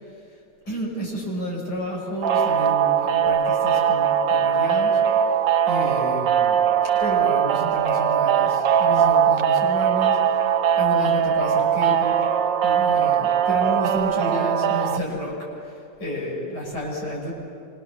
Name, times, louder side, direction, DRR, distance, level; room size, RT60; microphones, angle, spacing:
voice 1, 0.0-0.4 0.7-5.2 5.7-12.2 12.6-17.3, equal, 65° left, -4 dB, 7.1 m, -31 dB
sound 1, 2.2-15.0, right 8 dB, 75° right, 1.5 m, -20 dB
26.0 x 26.0 x 7.2 m, 2.4 s
omnidirectional pair, 2.0 m